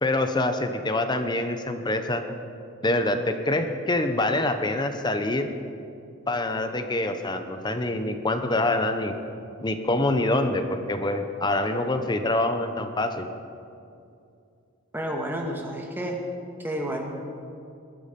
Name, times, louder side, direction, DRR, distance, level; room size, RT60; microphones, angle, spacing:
voice 1, 0.0-2.2 2.8-5.5 6.3-9.1 9.6-13.3, left 2 dB, 20° left, 7 dB, 0.8 m, -25 dB
voice 2, 14.9-16.2 16.6-17.0, right 1 dB, 10° right, 0 dB, 1.9 m, -30 dB
20.0 x 12.5 x 5.3 m, 2.5 s
head